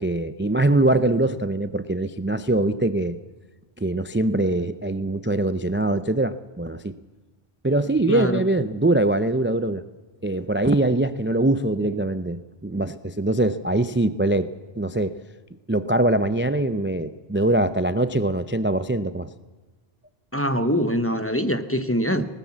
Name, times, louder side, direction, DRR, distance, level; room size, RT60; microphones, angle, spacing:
voice 1, 0.0-3.2 3.8-6.9 7.6-9.8 10.2-14.5 14.8-15.2 15.7-19.3 22.1-22.3, right 2 dB, 15° right, 12 dB, 0.4 m, -23 dB
voice 2, 8.1-8.4 20.3-22.3, equal, 15° left, 9 dB, 0.9 m, -23 dB
19.5 x 19.0 x 7.2 m, 1.2 s
omnidirectional pair, 1.1 m